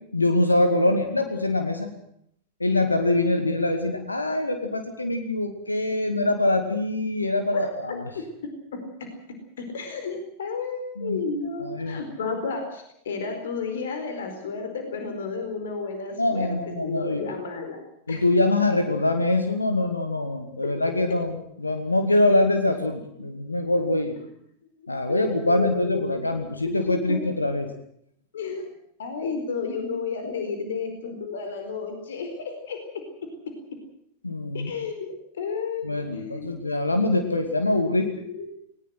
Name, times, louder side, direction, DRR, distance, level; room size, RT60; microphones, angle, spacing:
voice 1, 0.1-1.9 2.6-8.1 11.0-11.2 11.6-12.0 16.2-17.2 18.1-24.2 24.9-27.7 34.2-34.7 35.8-38.1, left 2 dB, 80° left, 7 dB, 2.4 m, -24 dB
voice 2, 8.1-8.8 9.6-17.8 18.1-18.2 20.6-20.7 24.8-26.1 26.7-27.2 28.3-28.7 29.0-32.8 34.5-36.7 38.3-38.5, left 4 dB, 60° left, 6 dB, 4.5 m, -32 dB
20.0 x 20.0 x 7.7 m, 0.71 s
figure-of-eight pair, 90°, 0 cm